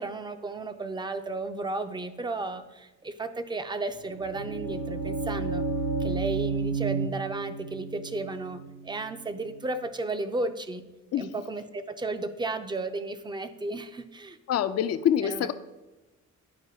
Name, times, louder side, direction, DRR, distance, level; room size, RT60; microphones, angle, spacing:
voice 1, 0.0-5.7 6.0-10.8 11.1-14.4 15.2-15.5, right 2 dB, 15° right, 9 dB, 0.5 m, -34 dB
sound 1, 3.9-9.8, right 4 dB, 60° right, 1.1 m, -32 dB
voice 2, 14.5-15.5, left 9 dB, 55° left, 12 dB, 0.5 m, -25 dB
11.0 x 4.6 x 2.8 m, 1.1 s
cardioid pair, 90°, 30 cm